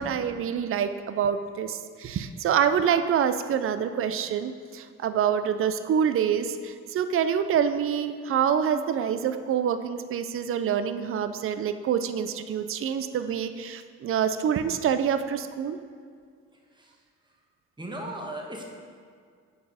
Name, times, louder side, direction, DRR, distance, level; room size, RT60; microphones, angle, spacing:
voice 1, 0.0-15.8, right 8 dB, 45° right, 10 dB, 0.5 m, -26 dB
voice 2, 17.8-18.7, right 1 dB, 15° right, 0 dB, 1.2 m, -37 dB
6.7 x 4.6 x 4.9 m, 2.1 s
cardioid pair, 90°, 30 cm